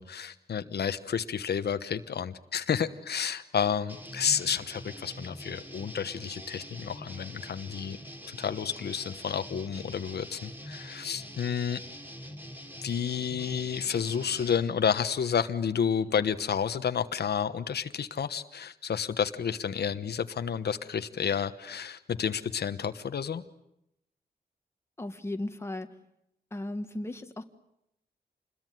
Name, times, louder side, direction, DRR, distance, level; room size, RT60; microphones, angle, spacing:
voice 1, 0.0-8.0 8.3-11.8 12.8-23.4, left 7 dB, 85° left, 10 dB, 1.2 m, -30 dB
sound 1, 3.9-14.6, equal, 10° right, 3.4 m, -44 dB
voice 2, 25.0-25.9 26.5-27.4, left 1 dB, 15° left, 7 dB, 1.5 m, -35 dB
28.0 x 21.5 x 9.4 m, 0.81 s
wide cardioid pair, 155°, 16 cm